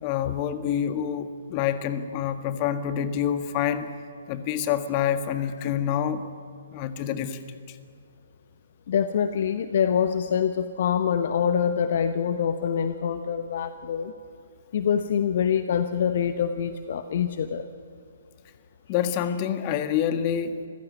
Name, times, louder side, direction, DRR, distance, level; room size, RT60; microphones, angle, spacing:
voice 1, 0.0-3.9 4.3-6.2 6.7-7.4 7.7-7.8 18.9-20.6, left 9 dB, 30° left, 10 dB, 1.6 m, -27 dB
voice 2, 8.9-14.1 14.7-17.7, left 8 dB, 50° left, 10 dB, 1.0 m, -25 dB
25.5 x 16.0 x 9.4 m, 2.4 s
figure-of-eight pair, 130°, 0 cm